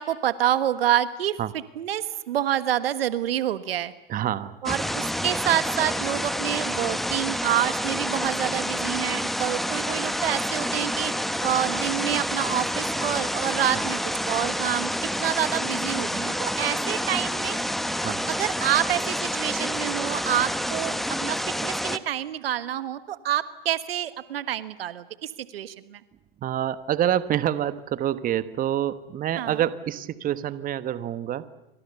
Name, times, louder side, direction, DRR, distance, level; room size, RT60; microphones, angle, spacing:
voice 1, 0.0-1.4 1.8-3.9 4.6-11.1 11.4-14.0 14.2-14.9 15.2-17.6 18.3-26.0 29.4-29.6, right 11 dB, 75° right, 13 dB, 1.5 m, -27 dB
voice 2, 4.1-4.6 13.7-13.8 18.0-18.2 26.4-31.5, right 11 dB, 30° right, 13 dB, 1.2 m, -27 dB
sound 1, 4.7-22.0, equal, ahead, 1.1 m, -28 dB
28.0 x 25.5 x 7.0 m, 0.90 s
hypercardioid pair, 105°, 29 cm